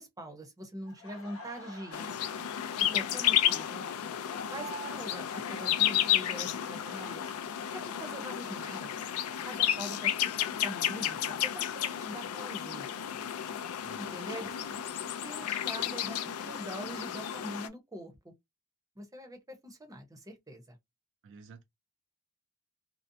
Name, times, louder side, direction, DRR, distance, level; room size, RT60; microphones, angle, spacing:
voice 1, 0.0-2.1 2.8-3.8 4.5-7.2 7.7-8.9 9.5-10.1 10.6-12.9 14.0-18.1 19.0-20.8, equal, 15° right, 0.7 m, -43 dB
Laughter, 0.9-10.7 11.0-13.0, equal, 70° left, 0.9 m, -50 dB
sound 1, 1.9-17.7, left 11 dB, 85° left, 0.4 m, -32 dB
voice 2, 13.8-14.2 21.2-21.6, right 5 dB, 60° right, 0.4 m, -51 dB
2.6 x 2.1 x 2.6 m
head